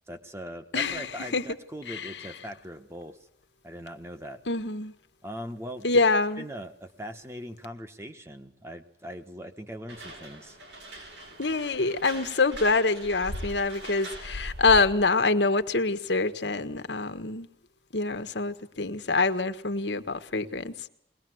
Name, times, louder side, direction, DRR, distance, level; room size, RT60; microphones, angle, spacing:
voice 1, 0.1-3.2 3.6-4.4 5.2-5.9 6.4-10.6, equal, 15° right, 7 dB, 1.5 m, -40 dB
voice 2, 0.7-1.5 1.9-2.2 4.5-4.9 5.8-6.5 11.4-17.5 17.9-20.9, left 3 dB, 85° left, 9 dB, 1.5 m, -26 dB
sound 1, 9.9-15.1, equal, 90° right, 7.6 m, -40 dB
22.0 x 19.5 x 7.9 m, 0.75 s
head